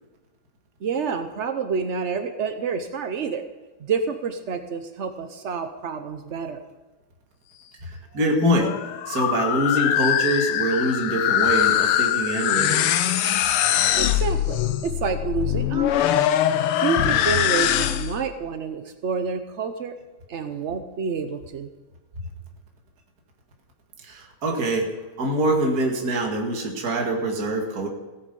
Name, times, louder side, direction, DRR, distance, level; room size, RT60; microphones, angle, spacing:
voice 1, 0.8-3.4 3.8-6.6 14.0-16.1 16.8-19.9 20.3-21.7, right 5 dB, 70° right, 8 dB, 0.6 m, -28 dB
voice 2, 7.8-8.7 9.1-12.9 24.0-24.9 25.2-27.9, right 2 dB, 45° right, 1 dB, 2.3 m, -24 dB
sound 1, 8.2-18.3, left 10 dB, 85° left, 1.7 m, -22 dB
16.5 x 9.8 x 5.3 m, 1.2 s
omnidirectional pair, 2.4 m